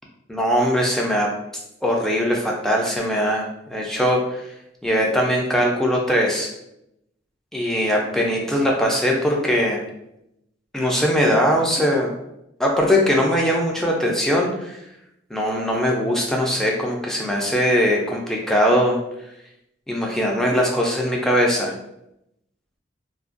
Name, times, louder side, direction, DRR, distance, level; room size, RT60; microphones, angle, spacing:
voice 1, 0.3-1.3 1.8-3.5 3.7-4.4 4.8-6.5 7.5-9.8 10.7-12.1 12.6-14.8 15.3-19.0 19.9-21.7, equal, ahead, -1 dB, 0.3 m, -20 dB
2.4 x 2.1 x 2.4 m, 0.82 s
head